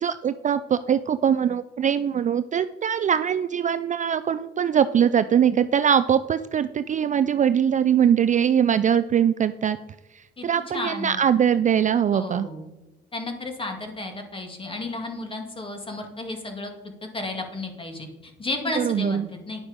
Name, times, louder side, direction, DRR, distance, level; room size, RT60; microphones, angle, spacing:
voice 1, 0.0-9.8 10.2-12.5 18.8-19.3, right 8 dB, 40° right, 12 dB, 0.4 m, -22 dB
voice 2, 10.7-11.4 12.1-12.7 13.1-16.7 17.1-19.6, left 2 dB, 25° left, 3 dB, 2.1 m, -33 dB
10.0 x 6.0 x 5.1 m, 1.0 s
cardioid pair, 90°, 20 cm